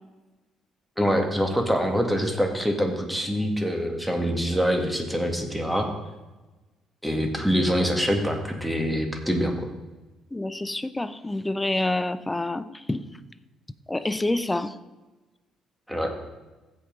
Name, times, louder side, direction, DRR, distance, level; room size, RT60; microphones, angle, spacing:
voice 1, 1.0-5.9 7.0-9.7 15.9-16.1, equal, 5° right, 3 dB, 2.0 m, -25 dB
voice 2, 10.3-13.1 13.9-14.7, left 2 dB, 15° left, 14 dB, 0.6 m, -27 dB
15.5 x 5.5 x 3.9 m, 1.2 s
hypercardioid pair, 50°, 0 cm